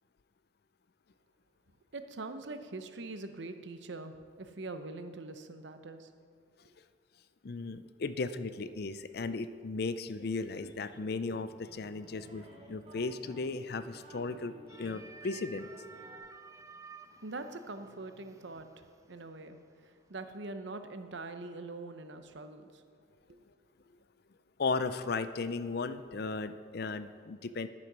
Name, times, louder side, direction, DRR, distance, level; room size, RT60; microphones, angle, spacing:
voice 1, 1.9-6.1 6.6-6.7 17.2-22.8 23.3-23.4, right 2 dB, 65° right, 8 dB, 0.8 m, -43 dB
voice 2, 7.4-15.7 24.6-27.7, left 3 dB, 50° left, 12 dB, 0.5 m, -36 dB
sound 1, 10.8-16.2, equal, 35° right, 2.2 m, -55 dB
sound 2, 14.7-19.6 19.9-20.0, right 4 dB, 15° right, 0.3 m, -53 dB
11.0 x 8.5 x 6.1 m, 2.1 s
head